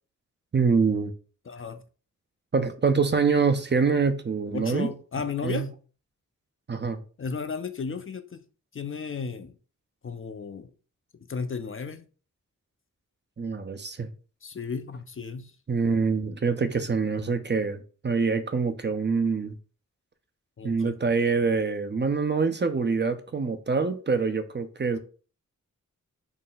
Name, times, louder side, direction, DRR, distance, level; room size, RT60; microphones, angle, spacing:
voice 1, 0.5-1.1 2.5-4.9 5.4-5.7 6.7-7.0 13.4-14.1 15.7-19.5 20.6-25.0, right 5 dB, 35° right, 0.5 m, -25 dB
voice 2, 1.5-1.8 4.5-5.7 7.2-8.4 8.7-9.5 10.0-10.7 11.3-12.0 14.4-15.5 20.6-20.9, left 5 dB, 40° left, 0.4 m, -34 dB
3.8 x 2.2 x 3.9 m
cardioid pair, 55°, 32 cm